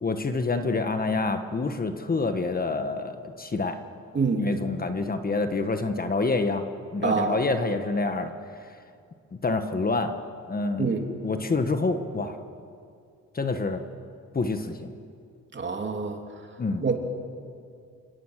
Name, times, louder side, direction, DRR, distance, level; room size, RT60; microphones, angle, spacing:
voice 1, 0.0-3.8 4.4-6.6 6.9-8.3 8.7-8.8 9.3-10.2 10.5-10.9 11.2-12.4 13.3-13.8 14.3-14.9 16.6-16.9, left 3 dB, 30° left, 8 dB, 1.5 m, -27 dB
voice 2, 4.1-4.5 7.0-7.4 10.8-11.1 15.5-16.2 16.8-17.0, right 4 dB, 40° right, 3 dB, 3.1 m, -26 dB
30.0 x 17.5 x 6.6 m, 2.3 s
cardioid pair, 90°, 30 cm